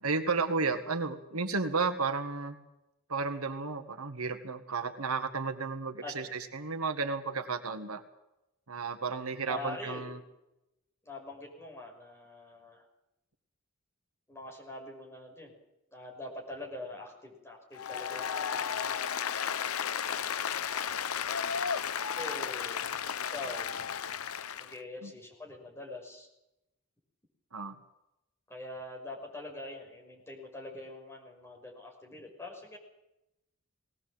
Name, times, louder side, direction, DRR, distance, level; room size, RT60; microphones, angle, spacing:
voice 1, 0.0-2.6 3.1-8.0 8.7-10.2 25.0-25.1 27.5-27.8, right 4 dB, 85° right, 7 dB, 1.9 m, -33 dB
voice 2, 9.5-10.2 11.1-12.8 14.3-15.5 15.9-19.0 22.1-22.9 23.2-23.8 24.6-26.3 28.5-32.8, left 2 dB, 10° left, -1 dB, 5.8 m, -44 dB
Applause, 17.7-24.8, left 7 dB, 80° left, 0.7 m, -34 dB
21.0 x 18.0 x 7.9 m, 0.90 s
head